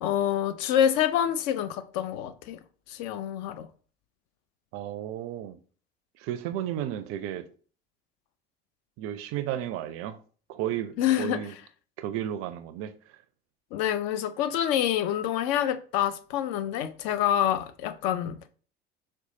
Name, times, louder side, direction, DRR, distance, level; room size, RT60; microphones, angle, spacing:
voice 1, 0.0-2.6 2.9-3.7 11.0-11.4 13.7-18.4, left 10 dB, 50° left, 0.4 m, -27 dB
voice 2, 4.7-5.6 6.2-7.4 9.0-10.2 10.5-11.5 12.0-12.9, right 11 dB, 45° right, 0.4 m, -33 dB
4.2 x 2.2 x 2.7 m
figure-of-eight pair, 70°, 32 cm